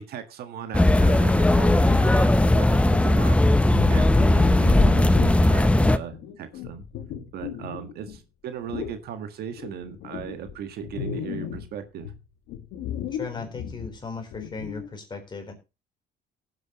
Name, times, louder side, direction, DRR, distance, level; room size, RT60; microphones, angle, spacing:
voice 1, 0.0-3.6 3.9-6.9 7.3-12.1, right 8 dB, 70° right, 8 dB, 1.6 m, -37 dB
sound 1, 0.7-6.0, left 1 dB, 5° left, 0.6 m, -18 dB
sound 2, 3.6-5.5 6.1-8.2 8.7-9.0 9.6-11.7 12.0-14.9, left 9 dB, 85° left, 1.8 m, -36 dB
voice 2, 13.1-15.5, left 4 dB, 25° left, 4 dB, 3.8 m, -37 dB
18.5 x 7.9 x 3.0 m, 0.27 s
cardioid pair, 110°, 17 cm